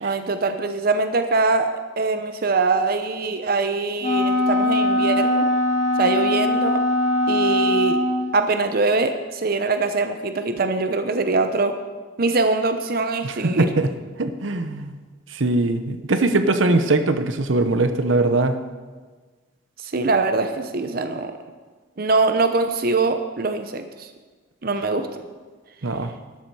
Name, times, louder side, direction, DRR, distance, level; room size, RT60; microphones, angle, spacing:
voice 1, 0.0-5.5 6.0-6.8 7.3-8.0 8.3-11.8 12.2-13.7 19.8-21.4 22.0-24.1 24.6-25.2, right 3 dB, 50° right, 8 dB, 0.7 m, -23 dB
Wind instrument woodwind instrument, 4.0-8.3, left 1 dB, 35° left, 2.2 m, -21 dB
voice 2, 13.2-13.9 14.2-15.0 15.3-18.5 25.8-26.1, right 2 dB, 90° right, 9 dB, 0.9 m, -21 dB
12.5 x 12.0 x 4.7 m, 1.4 s
head